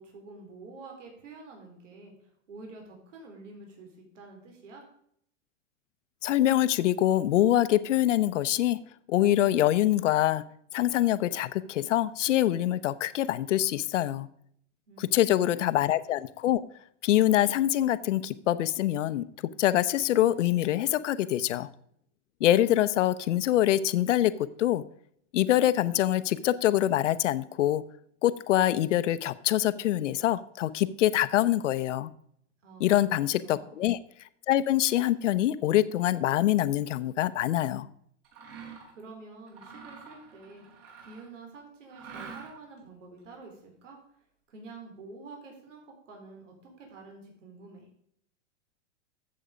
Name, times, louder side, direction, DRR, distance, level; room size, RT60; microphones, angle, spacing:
voice 1, 0.0-4.8 14.9-15.7 32.6-33.8 38.9-40.6 41.0-44.0 44.5-47.9, right 3 dB, 85° right, 1 dB, 4.2 m, -48 dB
voice 2, 6.2-8.8 9.1-10.4 10.7-14.3 15.0-16.6 17.0-19.2 19.6-21.7 22.4-24.3 24.6-24.8 25.3-27.8 28.2-32.1 32.8-34.0 34.5-37.9, left 13 dB, 80° left, 15 dB, 0.8 m, -25 dB
Mechanisms, 38.2-39.0 39.5-41.4 41.9-42.8, right 6 dB, 55° right, 6.2 m, -46 dB
13.5 x 7.8 x 5.1 m, 0.68 s
supercardioid pair, 170°, 36 cm